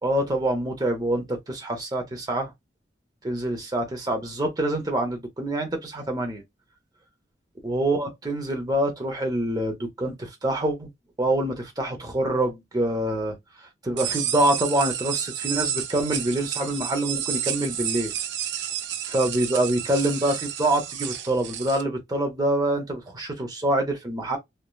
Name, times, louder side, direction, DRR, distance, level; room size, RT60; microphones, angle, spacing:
voice 1, 0.0-2.5 3.2-6.4 7.6-10.9 11.2-13.3 13.8-18.1 19.1-24.4, right 1 dB, 20° right, 0.7 m, -26 dB
sound 1, 14.0-21.8, right 9 dB, 70° right, 0.4 m, -31 dB
3.1 x 2.1 x 2.3 m
head